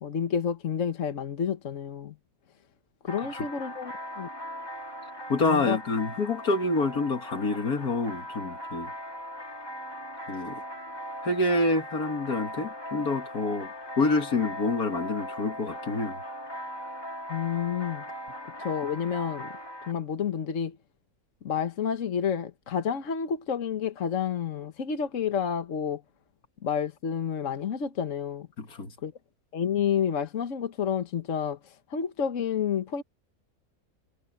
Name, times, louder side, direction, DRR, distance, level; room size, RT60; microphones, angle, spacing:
voice 1, 0.0-2.1 3.0-4.3 5.4-5.8 17.3-18.0 18.6-19.5 19.9-20.7 21.4-26.0 26.6-28.5 29.0-29.1 29.5-31.6 31.9-33.0, left 7 dB, 60° left, 1.6 m, -29 dB
sound 1, 3.1-19.9, equal, 15° left, 1.9 m, -39 dB
voice 2, 5.3-8.9 10.3-10.6 11.2-13.7 14.0-16.2 28.6-28.9, left 2 dB, 85° left, 2.6 m, -27 dB
omnidirectional pair, 1.5 m